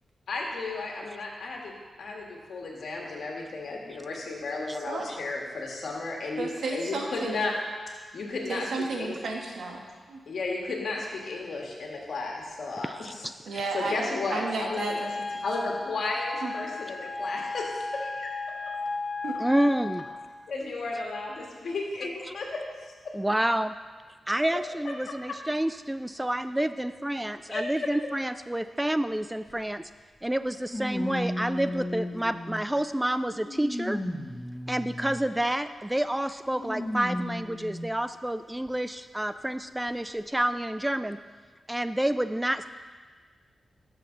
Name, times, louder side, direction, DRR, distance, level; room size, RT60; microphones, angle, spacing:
voice 1, 0.3-1.7 2.0-7.5 8.1-8.7 9.0-9.1 10.3-13.3 13.7-15.0 15.4-18.3 20.5-22.6 24.9-25.4 27.5-27.9, left 3 dB, 70° left, -1 dB, 1.8 m, -34 dB
voice 2, 6.4-7.4 8.5-10.2 13.4-15.4 16.4-16.5 19.2-19.6, right 3 dB, 80° right, 0 dB, 1.5 m, -33 dB
voice 3, 12.8-13.3 19.4-20.0 23.1-23.7 24.3-29.8 30.2-34.0 34.7-41.2 41.7-42.7, right 1 dB, 10° right, 12 dB, 0.3 m, -29 dB
Wind instrument woodwind instrument, 14.7-20.1, left 3 dB, 40° left, 0.6 m, -35 dB
sound 1, 29.5-29.6 30.7-32.8 33.3-35.4 36.5-38.0 38.7-38.8 39.9-40.0, left 1 dB, 15° left, 1.1 m, -34 dB
12.0 x 6.6 x 3.9 m, 1.5 s
cardioid pair, 75°, 0 cm